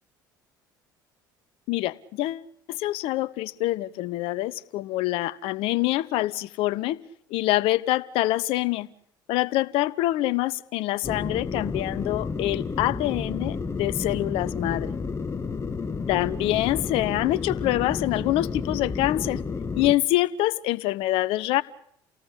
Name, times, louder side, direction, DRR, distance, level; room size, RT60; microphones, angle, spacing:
voice 1, 1.7-7.0 7.3-8.9 9.3-15.0 16.1-19.4 19.7-21.6, left 16 dB, 65° left, 1.1 m, -25 dB
sound 1, 11.0-19.9, left 4 dB, 25° left, 2.0 m, -31 dB
30.0 x 18.5 x 8.5 m
hypercardioid pair, 65°, 10 cm